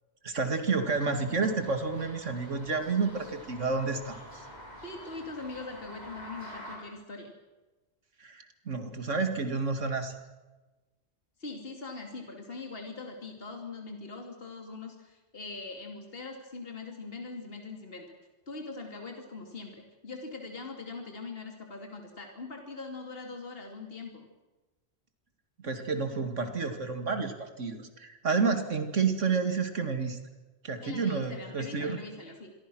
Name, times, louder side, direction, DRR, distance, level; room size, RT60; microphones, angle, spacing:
voice 1, 0.2-4.4 8.2-10.1 25.6-30.2 30.6-32.0, right 4 dB, 90° right, 7 dB, 2.7 m, -30 dB
sound 1, 0.8-6.8, equal, 35° left, 6.5 m, -47 dB
voice 2, 4.8-7.3 11.4-18.2 18.5-24.3 30.8-32.5, left 3 dB, 50° left, 3 dB, 2.9 m, -42 dB
27.0 x 23.0 x 6.3 m, 1.2 s
omnidirectional pair, 1.2 m